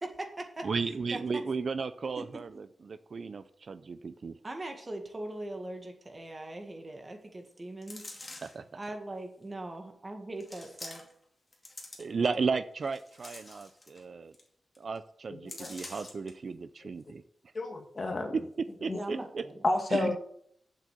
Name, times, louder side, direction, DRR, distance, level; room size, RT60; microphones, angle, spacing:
voice 1, 0.0-0.7 1.1-1.4 2.2-2.4 4.4-8.0 8.7-11.1 18.9-19.7, right 1 dB, 25° right, 5 dB, 1.7 m, -40 dB
voice 2, 0.6-4.4 8.4-8.6 12.0-14.3 14.8-17.2 18.3-19.4 19.9-20.2, right 5 dB, 50° right, 13 dB, 0.4 m, -34 dB
sound 1, 7.8-8.7 9.4-9.5 10.4-11.2 11.5-12.3 12.8-14.0 14.3-14.5 14.8-15.0 15.5-16.3 16.8-16.9, left 2 dB, 20° left, 2.4 m, -46 dB
voice 3, 17.5-18.4 18.9-19.0 19.6-20.2, left 2 dB, 40° left, 5 dB, 1.7 m, -30 dB
7.7 x 7.4 x 8.2 m, 0.66 s
wide cardioid pair, 150°, 0 cm